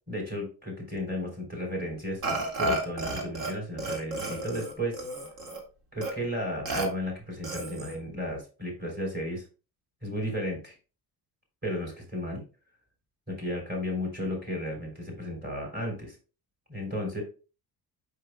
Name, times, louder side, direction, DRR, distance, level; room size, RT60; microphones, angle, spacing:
voice 1, 0.1-2.2 2.6-5.0 5.9-9.5 10.0-10.8 11.6-12.4 13.3-16.2 16.7-17.2, equal, 25° right, 0 dB, 3.6 m, -34 dB
Burping eructation, 2.2-3.5 3.8-5.6 6.0-6.1 6.7-6.9 7.4-8.0, right 1 dB, 65° right, 2.0 m, -32 dB
7.6 x 5.4 x 2.3 m, 0.33 s
cardioid pair, 115°, 40 cm